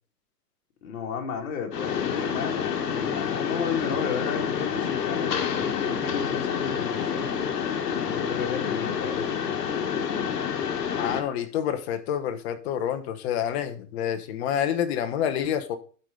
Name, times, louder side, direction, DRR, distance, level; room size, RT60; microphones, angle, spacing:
voice 1, 0.8-7.3 7.9-9.3, left 6 dB, 60° left, 2.7 m, -33 dB
Mechanisms, 1.7-11.2, left 7 dB, 85° left, 1.5 m, -28 dB
voice 2, 11.0-15.8, left 9 dB, 40° left, 1.1 m, -28 dB
12.0 x 5.0 x 3.9 m
hypercardioid pair, 140°, 48 cm